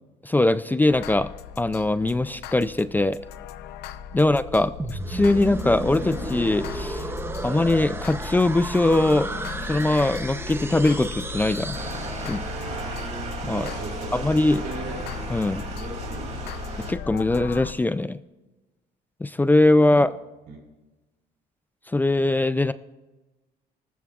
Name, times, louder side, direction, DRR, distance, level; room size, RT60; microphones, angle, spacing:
voice 1, 0.3-1.3 1.6-3.2 4.1-7.0 7.4-9.3 9.6-11.8 12.2-12.4 13.4-13.7 14.1-14.6 15.3-15.6 16.9-18.2 19.2-20.1 21.9-22.7, left 2 dB, 10° left, 13 dB, 0.4 m, -21 dB
sound 1, 0.9-17.7, left 8 dB, 80° left, 0.7 m, -37 dB
sound 2, 4.8-12.7, right 2 dB, 15° right, 0.7 m, -33 dB
sound 3, 11.7-16.9, right 4 dB, 40° right, 2.8 m, -35 dB
voice 2, 13.5-15.0 15.7-16.4 20.5-20.6, right 3 dB, 90° right, 0 dB, 3.8 m, -38 dB
18.5 x 14.5 x 2.4 m, 1.1 s
cardioid pair, 110°, 17 cm